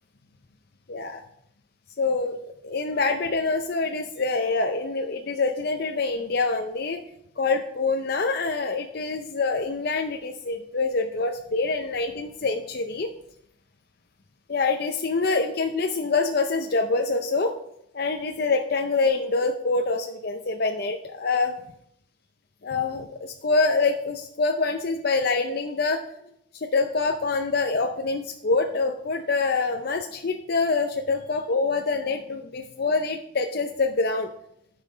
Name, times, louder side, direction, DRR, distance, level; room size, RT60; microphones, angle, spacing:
voice 1, 0.9-1.2 2.0-7.0 7.4-13.1 14.5-17.5 17.9-21.5 22.6-26.0 26.5-34.3, left 3 dB, 50° left, 4 dB, 0.6 m, -25 dB
10.5 x 5.6 x 5.1 m, 0.74 s
head